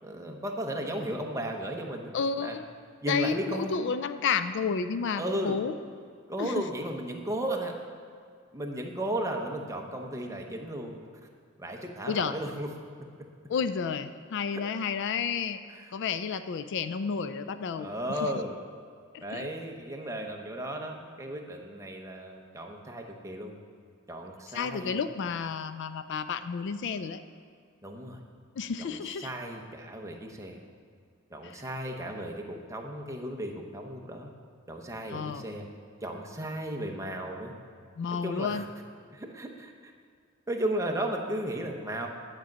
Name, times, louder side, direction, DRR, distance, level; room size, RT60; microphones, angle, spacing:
voice 1, 0.0-2.6 3.0-3.8 5.1-5.5 6.3-7.7 8.5-11.0 11.6-12.7 14.5-14.6 17.8-18.6 19.2-23.5 24.1-25.0 27.8-28.2 28.8-30.6 31.3-34.3 34.7-35.7 36.0-37.5 38.1-38.6 39.1-39.9 40.5-42.1, right 1 dB, 15° right, 1 dB, 0.9 m, -35 dB
voice 2, 2.1-2.6 3.1-5.7 6.4-6.6 12.1-12.3 13.5-15.6 15.9-17.9 18.2-18.3 19.1-19.5 24.5-27.2 28.6-29.3 31.4-31.6 35.1-35.5 38.0-38.6, left 6 dB, 60° left, 11 dB, 0.4 m, -31 dB
10.0 x 5.2 x 7.4 m, 2.1 s
head